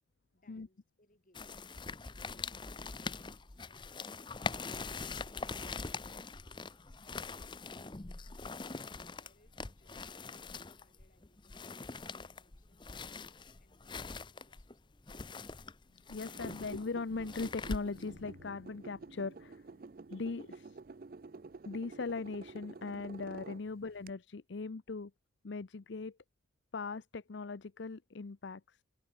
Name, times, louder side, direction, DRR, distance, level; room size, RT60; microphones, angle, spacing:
voice 1, 0.3-4.0 4.7-8.7 9.2-15.1, left 1 dB, 45° left, 5.8 m, -71 dB
sound 1, 1.3-18.2, left 4 dB, 25° left, 0.7 m, -43 dB
sound 2, 3.0-20.4, equal, 5° right, 4.7 m, -76 dB
voice 2, 16.1-19.7 20.1-20.8 21.6-25.1 25.4-26.2 26.7-28.8, left 4 dB, 70° left, 0.6 m, -40 dB
sound 3, 16.3-24.1, right 3 dB, 45° right, 0.5 m, -50 dB
head